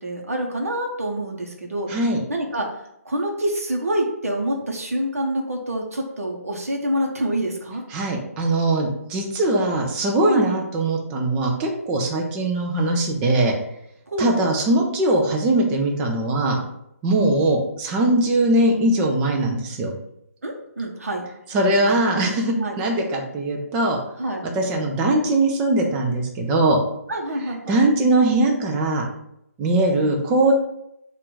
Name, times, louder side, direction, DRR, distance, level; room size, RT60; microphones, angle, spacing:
voice 1, 0.0-1.9 2.3-2.7 3.0-7.8 10.3-10.5 14.1-14.3 18.1-18.2 20.4-21.2 22.6-22.8 24.2-24.4 27.1-27.8 29.9-30.1, right 1 dB, 60° right, 1 dB, 0.8 m, -26 dB
voice 2, 1.9-2.2 7.9-13.5 14.2-16.6 17.0-19.9 21.5-24.0 24.5-26.8 27.7-29.0 29.6-30.5, right 2 dB, 15° right, 1 dB, 0.5 m, -21 dB
3.7 x 2.5 x 4.0 m, 0.79 s
figure-of-eight pair, 140°, 9 cm